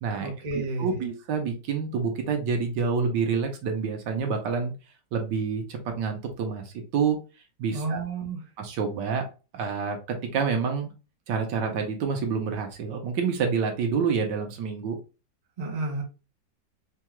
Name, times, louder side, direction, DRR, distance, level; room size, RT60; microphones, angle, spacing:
voice 1, 0.2-1.0 7.7-8.4 15.6-16.0, right 3 dB, 30° right, 0.7 m, -31 dB
voice 2, 0.8-4.7 5.1-7.2 7.6-8.0 8.6-9.2 9.5-10.9 11.3-15.0, right 5 dB, 75° right, 1.4 m, -28 dB
4.5 x 2.3 x 2.9 m
omnidirectional pair, 2.0 m